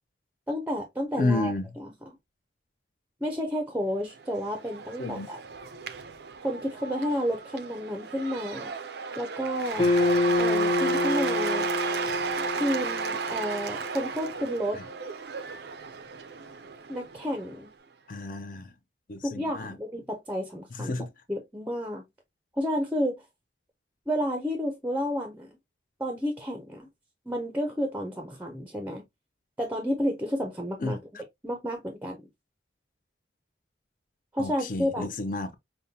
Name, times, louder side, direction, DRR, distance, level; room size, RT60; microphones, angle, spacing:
voice 1, 0.5-1.9 3.2-5.4 6.4-8.7 9.2-9.9 10.4-11.7 12.6-14.8 16.9-17.7 19.2-22.0 22.5-23.2 24.1-25.5 26.0-26.9 27.3-29.0 29.6-31.0 31.4-32.3 34.3-35.1, equal, 10° right, 0.5 m, -31 dB
voice 2, 1.2-1.6 5.0-5.3 14.7-14.8 18.1-18.7 19.1-19.8 20.8-21.1 30.8-31.2 34.4-35.5, left 2 dB, 45° left, 0.5 m, -31 dB
Cheering / Applause / Crowd, 4.1-17.6, right 5 dB, 60° right, 0.5 m, -34 dB
sound 1, 9.8-14.1, left 2 dB, 30° left, 0.9 m, -27 dB
5.2 x 2.1 x 2.7 m
head